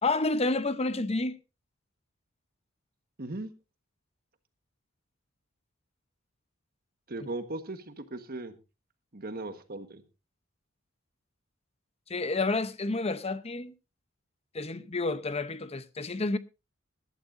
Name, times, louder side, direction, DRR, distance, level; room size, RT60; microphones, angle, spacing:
voice 1, 0.0-1.4 12.1-13.7 14.5-16.4, left 3 dB, 30° left, 0.8 m, -29 dB
voice 2, 3.2-3.5 7.1-8.5 9.1-10.0, right 2 dB, 45° right, 1.4 m, -38 dB
20.0 x 12.5 x 2.6 m
head